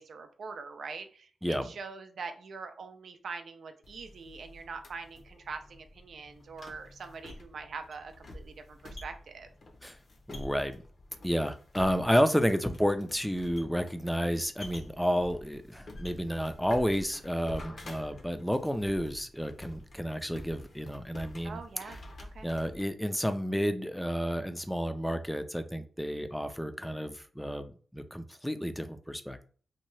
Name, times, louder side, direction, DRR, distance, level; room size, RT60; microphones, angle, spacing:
voice 1, 0.0-9.5 21.4-22.5, right 4 dB, 70° right, 7 dB, 0.4 m, -43 dB
sound 1, 3.8-22.9, left 1 dB, 60° left, 0.6 m, -48 dB
voice 2, 10.3-10.8 11.2-21.6 22.4-29.4, equal, 5° left, 9 dB, 0.4 m, -31 dB
2.8 x 2.2 x 3.1 m, 0.41 s
cardioid pair, 60°, 0 cm